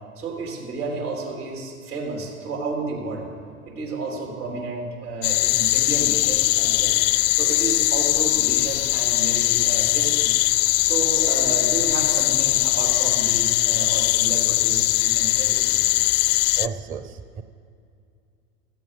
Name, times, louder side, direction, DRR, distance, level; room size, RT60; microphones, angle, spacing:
voice 1, 0.2-3.3 3.6-6.9 7.3-10.3 10.8-16.1, right 3 dB, 85° right, 0 dB, 3.8 m, -31 dB
sound 1, 5.2-16.7, left 20 dB, 45° left, 0.4 m, -20 dB
voice 2, 16.6-17.4, right 6 dB, 20° right, 10 dB, 0.6 m, -33 dB
16.0 x 13.0 x 5.5 m, 2.4 s
hypercardioid pair, 95°, 44 cm